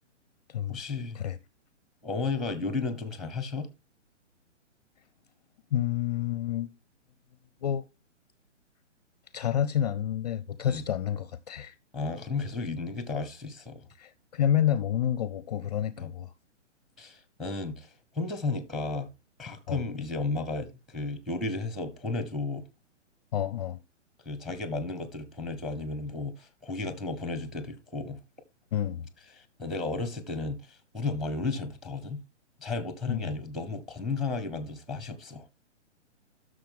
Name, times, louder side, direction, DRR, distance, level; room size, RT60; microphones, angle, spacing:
voice 1, 0.7-1.2 2.0-3.7 10.6-10.8 11.9-13.8 16.0-16.1 17.0-17.9 18.1-19.1 19.4-22.6 24.2-28.2 29.4-32.2 32.6-35.4, left 3 dB, ahead, 0.9 m, -33 dB
voice 2, 5.7-6.7 7.6-7.8 9.3-11.7 14.0-16.3 19.7-19.8 23.3-23.8 28.7-29.1 33.1-33.3, left 10 dB, 35° left, 0.5 m, -29 dB
11.5 x 6.4 x 3.5 m
figure-of-eight pair, 130°, 37 cm